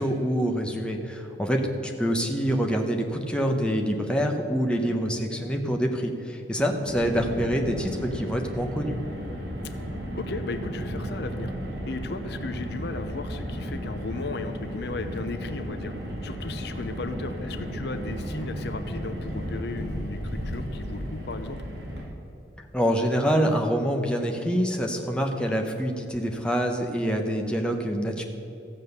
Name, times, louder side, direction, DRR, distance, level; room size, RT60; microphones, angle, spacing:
voice 1, 0.0-9.0 22.7-28.2, equal, 5° left, 2 dB, 1.0 m, -26 dB
voice 2, 4.8-5.1 10.1-11.5 11.8-15.9 16.2-21.6, left 3 dB, 65° left, 9 dB, 0.7 m, -35 dB
Car, 6.9-22.1, equal, 65° right, 2.6 m, -34 dB
14.5 x 7.5 x 6.7 m, 3.0 s
head